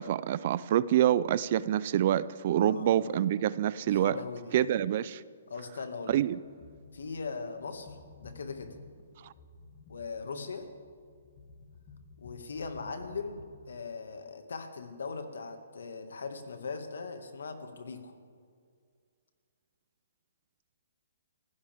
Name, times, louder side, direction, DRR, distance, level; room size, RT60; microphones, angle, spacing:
voice 1, 0.0-4.2 4.5-5.2 6.1-6.4, right 11 dB, 40° right, 19 dB, 0.4 m, -26 dB
voice 2, 2.5-3.0 3.9-4.6 5.5-6.2 6.9-8.8 9.9-10.7 12.2-18.1, left 4 dB, 85° left, 6 dB, 1.9 m, -40 dB
sound 1, 6.1-13.4, left 3 dB, 30° left, 1.9 m, -53 dB
25.0 x 16.0 x 3.6 m, 2.1 s
hypercardioid pair, 160°, 0 cm